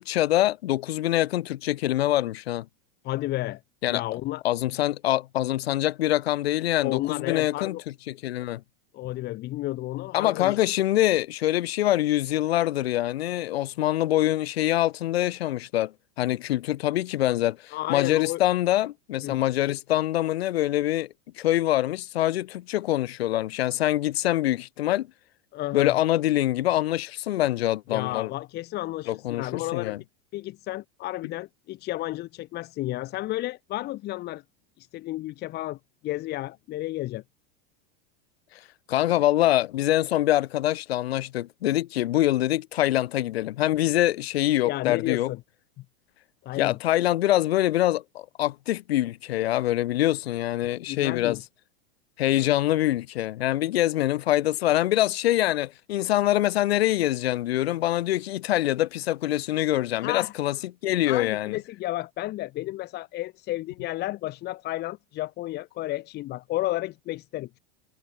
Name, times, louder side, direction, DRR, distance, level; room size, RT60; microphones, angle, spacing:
voice 1, 0.0-2.7 3.8-4.0 4.4-7.7 8.1-8.6 10.1-21.1 21.4-25.1 25.7-28.3 29.1-30.0 38.9-45.3 46.6-51.4 52.2-60.6 60.8-61.6, left 14 dB, 90° left, 2.4 m, -24 dB
voice 2, 3.0-3.6 3.9-4.4 6.8-7.8 8.9-10.6 17.7-18.4 19.2-19.4 25.5-25.9 27.9-30.0 30.3-34.4 34.8-37.2 44.6-45.4 46.4-46.8 50.9-51.4 52.3-52.5 60.0-60.3 61.0-67.6, left 17 dB, 35° left, 4.8 m, -32 dB
supercardioid pair, 160°, 30 cm